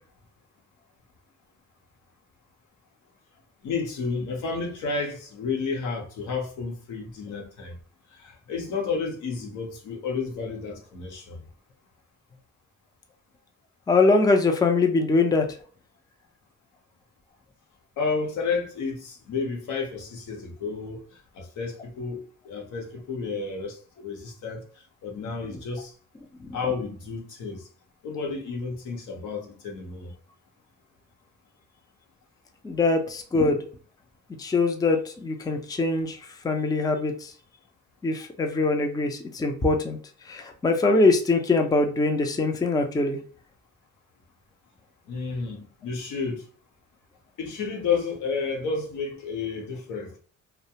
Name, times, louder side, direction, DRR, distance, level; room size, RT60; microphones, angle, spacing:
voice 1, 3.6-7.8 8.2-11.4 18.0-21.0 21.3-24.6 25.0-25.9 26.5-27.7 28.0-30.1 45.1-46.4 47.4-50.2, left 4 dB, 80° left, 0.8 m, -31 dB
voice 2, 13.9-15.5 25.5-25.6 26.4-26.6 32.6-33.7 34.4-37.3 38.0-40.0 40.3-43.2, left 3 dB, 15° left, 0.4 m, -23 dB
2.3 x 2.1 x 2.7 m
cardioid pair, 90°, 30 cm